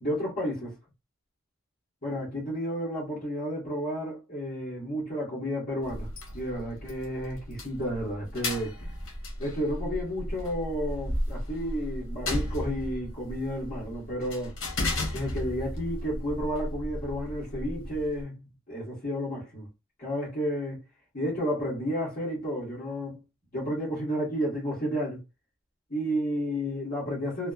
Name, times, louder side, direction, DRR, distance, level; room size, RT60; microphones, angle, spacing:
voice 1, 0.0-0.8 2.0-6.1 6.3-8.7 9.4-14.6 15.1-19.7 20.0-20.8 21.1-23.2 23.5-25.2 25.9-27.5, equal, 45° left, 1.5 m, -31 dB
sound 1, 5.8-18.2, left 1 dB, 75° left, 1.2 m, -35 dB
3.1 x 2.1 x 2.4 m
head